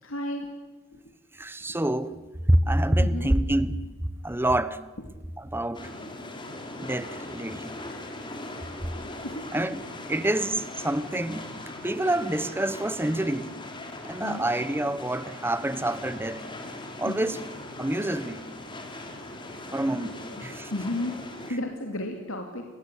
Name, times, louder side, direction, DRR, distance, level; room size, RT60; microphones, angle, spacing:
voice 1, 0.0-0.5 3.0-3.3 9.2-9.5 14.2-14.5 17.0-17.4 19.9-20.0 20.3-20.4 20.7-21.2 21.5-22.6, left 1 dB, 80° left, 2.8 m, -33 dB
voice 2, 1.3-2.2 2.5-4.8 5.4-5.9 6.8-7.7 9.5-11.5 11.8-13.5 14.0-16.4 17.0-17.4 17.8-18.4 19.7-20.7, right 1 dB, 10° right, 1.0 m, -27 dB
sound 1, 5.7-21.5, left 2 dB, 25° left, 3.4 m, -40 dB
28.5 x 21.0 x 8.4 m
head